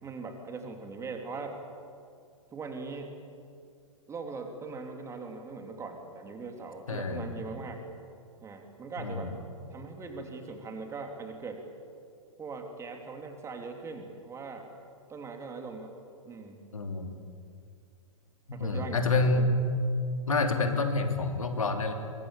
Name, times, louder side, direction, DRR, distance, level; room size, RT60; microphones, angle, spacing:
voice 1, 0.0-1.6 2.5-3.1 4.1-7.8 8.4-9.3 9.7-11.6 12.4-14.7 15.1-15.9 16.2-16.6 18.5-19.6, right 4 dB, 15° right, 4 dB, 3.2 m, -40 dB
voice 2, 6.9-7.3 9.0-9.3 16.7-17.1 18.5-19.6 20.3-21.9, left 3 dB, 75° left, 5 dB, 3.0 m, -28 dB
24.0 x 22.0 x 8.5 m, 2.4 s
figure-of-eight pair, 115°, 17 cm